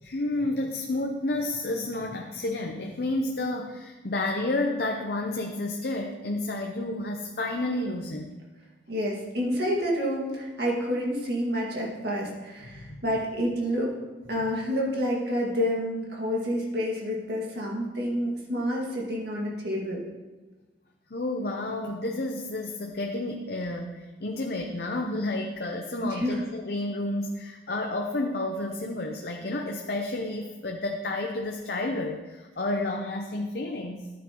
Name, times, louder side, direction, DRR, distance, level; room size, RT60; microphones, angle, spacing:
voice 1, 0.0-8.3 12.6-13.0 21.1-34.1, left 2 dB, 60° left, 2 dB, 0.7 m, -31 dB
voice 2, 8.9-13.9 14.3-20.0 26.0-26.4, equal, 70° right, -3 dB, 2.0 m, -29 dB
13.0 x 8.4 x 3.0 m, 1.2 s
head